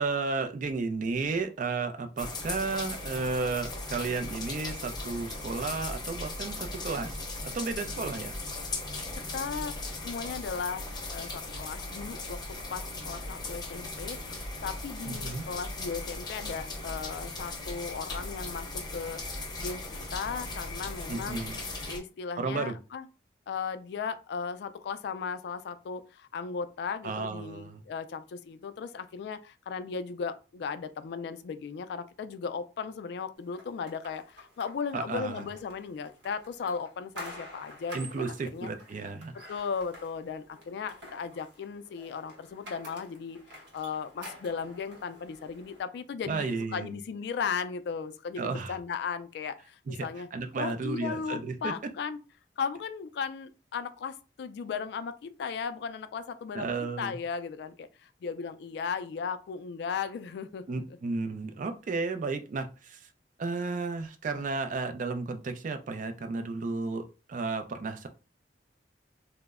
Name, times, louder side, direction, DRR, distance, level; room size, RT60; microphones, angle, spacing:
voice 1, 0.0-7.3 7.5-8.4 15.1-15.4 21.1-21.6 22.4-22.8 27.0-27.8 34.9-35.5 37.9-39.3 46.3-47.0 48.4-48.8 49.9-51.7 56.5-57.2 60.7-63.0 63.4-67.0 67.3-68.1, right 4 dB, 45° right, 0.4 m, -33 dB
sound 1, 2.2-22.0, left 2 dB, 25° left, 0.6 m, -38 dB
voice 2, 9.3-9.7 10.0-12.4 12.7-19.2 19.6-19.8 20.1-21.4 21.9-23.1 23.5-38.7 39.5-50.3 50.6-52.2 52.6-56.7 57.0-61.0, left 6 dB, 70° left, 0.3 m, -36 dB
sound 2, 33.5-45.8, equal, 85° right, 0.9 m, -49 dB
2.1 x 2.0 x 3.4 m
head